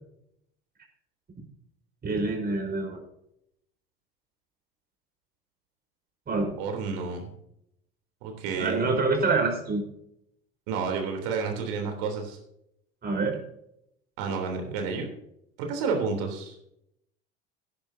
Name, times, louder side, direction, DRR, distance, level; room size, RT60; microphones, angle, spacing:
voice 1, 2.0-3.0 6.3-6.5 8.6-9.8 13.0-13.4, right 3 dB, 30° right, 2 dB, 4.5 m, -26 dB
voice 2, 6.6-7.3 8.2-8.9 10.7-12.4 14.2-15.1 15.6-16.5, right 5 dB, 65° right, 4 dB, 3.4 m, -30 dB
17.5 x 10.5 x 2.8 m, 0.77 s
hypercardioid pair, 70°, 30 cm